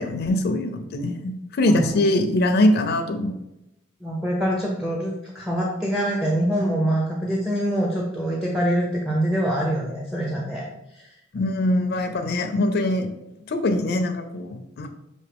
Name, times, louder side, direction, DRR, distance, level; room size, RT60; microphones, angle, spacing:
voice 1, 0.0-3.3 11.3-13.1 13.5-14.9, left 1 dB, 50° left, 5 dB, 0.4 m, -22 dB
voice 2, 4.0-10.7, right 1 dB, 5° right, -2 dB, 0.5 m, -24 dB
5.8 x 2.7 x 3.4 m, 0.87 s
head